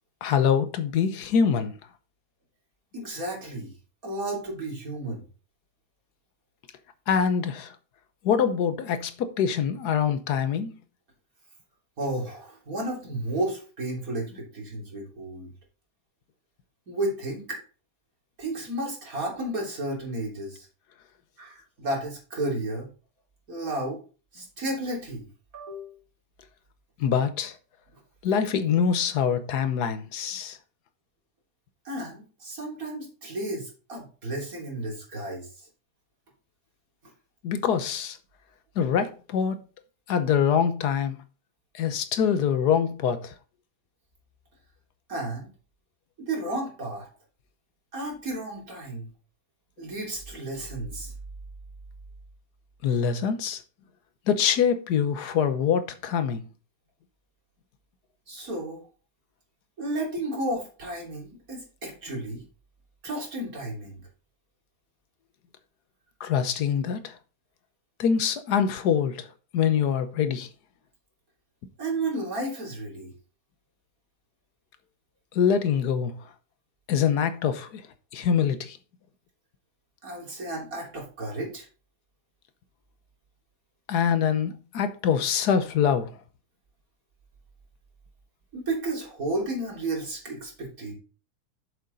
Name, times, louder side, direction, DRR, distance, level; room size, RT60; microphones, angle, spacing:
voice 1, 0.2-1.7 7.1-7.8 8.2-10.7 27.0-27.6 28.2-30.6 37.4-38.2 38.8-39.6 40.1-41.2 41.7-43.3 52.8-53.6 54.3-56.4 66.2-67.2 68.0-70.5 75.3-76.1 76.9-77.8 78.1-78.8 83.9-86.2, left 7 dB, 85° left, 1.5 m, -24 dB
voice 2, 2.9-3.7 4.0-5.2 12.0-15.5 16.9-17.6 18.4-20.7 21.4-22.9 23.5-24.0 24.3-25.3 25.5-26.0 31.9-35.7 45.1-45.5 46.2-47.1 47.9-49.1 49.8-51.1 58.3-58.8 59.8-62.4 63.0-64.0 71.8-73.1 80.0-81.7 88.5-90.9, right 2 dB, 60° right, 3.7 m, -32 dB
7.9 x 7.0 x 3.9 m
omnidirectional pair, 1.7 m